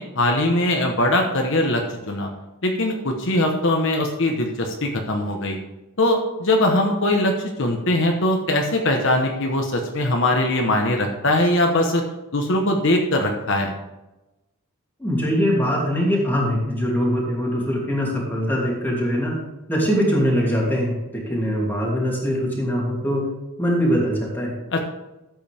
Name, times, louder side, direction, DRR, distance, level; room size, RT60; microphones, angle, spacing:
voice 1, 0.0-2.3 2.6-5.6 6.0-12.0 12.3-13.7 24.7-24.8, left 1 dB, 60° left, 2 dB, 1.2 m, -21 dB
voice 2, 15.0-19.4 19.7-23.3 23.6-24.5, equal, 10° left, -3 dB, 2.8 m, -22 dB
13.5 x 8.1 x 3.5 m, 0.98 s
head